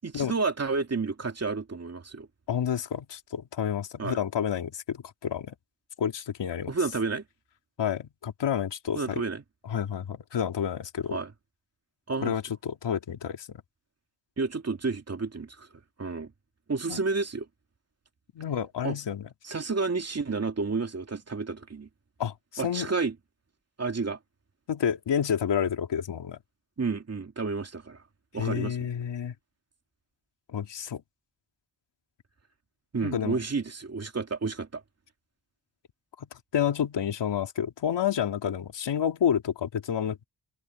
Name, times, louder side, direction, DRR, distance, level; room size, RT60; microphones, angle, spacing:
voice 1, 0.0-2.3 4.0-4.2 6.7-7.2 8.9-9.4 11.1-11.3 12.1-12.3 14.4-15.7 16.0-16.3 16.7-17.5 18.8-19.0 19.4-21.9 22.6-23.1 23.8-24.2 26.8-28.0 28.3-28.8 32.9-34.8, right 4 dB, 35° right, 2.8 m, -30 dB
voice 2, 2.5-5.5 6.0-6.7 7.8-9.2 9.7-11.2 12.2-13.5 16.9-17.0 18.3-19.2 22.2-22.9 24.7-26.4 28.4-29.3 30.5-31.0 33.0-33.4 36.2-36.3 36.5-40.3, left 8 dB, 85° left, 2.7 m, -29 dB
cardioid pair, 90°, 41 cm